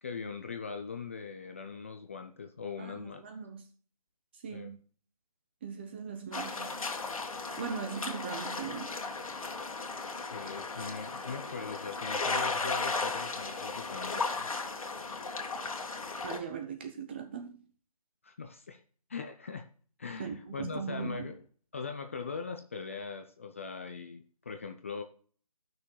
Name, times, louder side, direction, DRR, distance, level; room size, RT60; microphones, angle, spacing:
voice 1, 0.0-3.2 4.5-4.8 10.3-14.5 18.2-18.8 19.1-19.7 20.0-21.4 21.7-25.0, left 5 dB, 20° left, 0.4 m, -41 dB
voice 2, 2.8-3.7 4.4-4.8 5.6-6.8 7.6-9.0 16.2-17.6 20.2-21.3, right 6 dB, 20° right, 0.6 m, -39 dB
sound 1, 6.3-16.4, left 3 dB, 65° left, 1.8 m, -35 dB
13.0 x 6.1 x 3.2 m
figure-of-eight pair, 160°, 19 cm